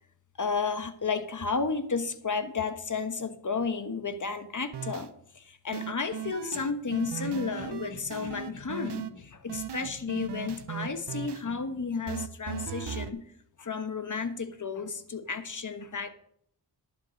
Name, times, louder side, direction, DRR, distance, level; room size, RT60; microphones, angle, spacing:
voice 1, 0.4-13.2 13.6-16.1, left 5 dB, 45° left, 9 dB, 1.2 m, -32 dB
sound 1, 4.7-5.1 5.7-9.1 9.5-11.4 12.1-13.1, right 8 dB, 65° right, 0.8 m, -37 dB
11.5 x 7.5 x 5.2 m, 0.69 s
wide cardioid pair, 75°, 44 cm